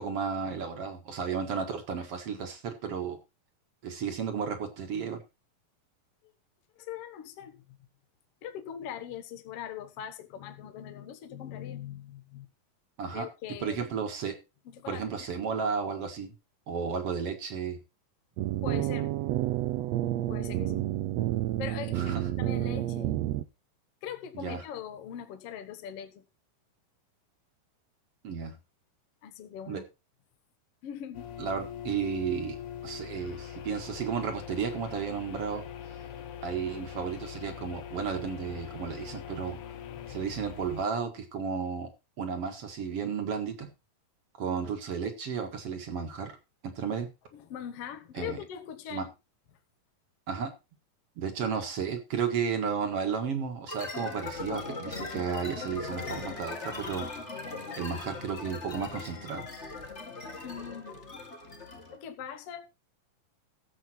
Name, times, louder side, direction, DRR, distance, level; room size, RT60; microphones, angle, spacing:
voice 1, 0.0-3.2 3.8-5.2 13.0-13.3 13.6-14.4 14.9-16.3 16.7-17.8 22.0-22.2 24.3-24.6 28.2-28.6 29.7-29.8 31.4-32.6 32.8-35.6 36.4-39.6 40.1-41.9 42.2-43.7 44.4-46.3 46.6-47.1 48.1-48.4 48.9-49.1 50.3-50.5 51.2-57.1 57.8-59.4, right 6 dB, 50° right, 2.4 m, -33 dB
voice 2, 6.7-7.8 8.4-12.5 13.1-13.8 14.7-15.3 18.6-19.2 20.3-21.0 21.6-23.2 24.0-26.2 29.2-29.8 30.8-31.3 47.3-49.1 60.4-61.0 61.9-62.7, left 9 dB, 55° left, 1.8 m, -41 dB
sound 1, 18.4-23.4, right 14 dB, 90° right, 1.4 m, -30 dB
sound 2, 31.1-40.8, left 9 dB, 80° left, 1.2 m, -42 dB
sound 3, 53.7-62.0, left 3 dB, 25° left, 1.6 m, -39 dB
14.0 x 7.6 x 4.5 m
omnidirectional pair, 4.1 m